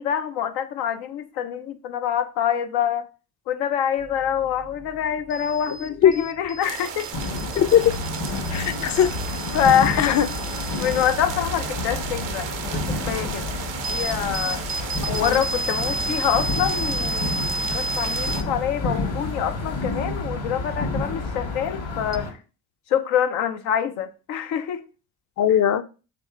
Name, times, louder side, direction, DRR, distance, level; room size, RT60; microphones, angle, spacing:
voice 1, 0.0-3.1 3.5-7.1 9.5-10.1 10.8-13.5 13.9-14.6 15.2-17.3 17.7-22.4 22.9-24.8, left 9 dB, 80° left, 0.7 m, -25 dB
sound 1, 4.0-22.2, right 2 dB, 20° right, 0.4 m, -34 dB
voice 2, 5.7-6.2 7.6-8.0 8.5-9.2 10.0-10.3 15.0-15.4 25.4-25.8, left 9 dB, 40° left, 0.6 m, -20 dB
sound 2, 6.6-18.4, right 9 dB, 85° right, 0.7 m, -35 dB
sound 3, 7.1-22.3, left 2 dB, 65° left, 1.8 m, -30 dB
3.5 x 3.3 x 4.6 m
hypercardioid pair, 55°, 43 cm